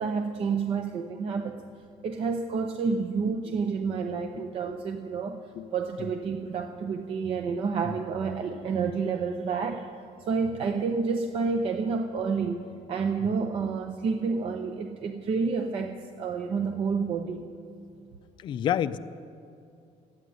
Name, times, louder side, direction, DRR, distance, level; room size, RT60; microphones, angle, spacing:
voice 1, 0.0-1.6 2.0-5.4 5.7-9.9 10.3-17.4, right 5 dB, 45° right, 5 dB, 0.6 m, -29 dB
voice 2, 18.4-19.0, left 10 dB, 35° left, 10 dB, 0.4 m, -29 dB
13.0 x 9.0 x 9.3 m, 2.5 s
cardioid pair, 170°, 13 cm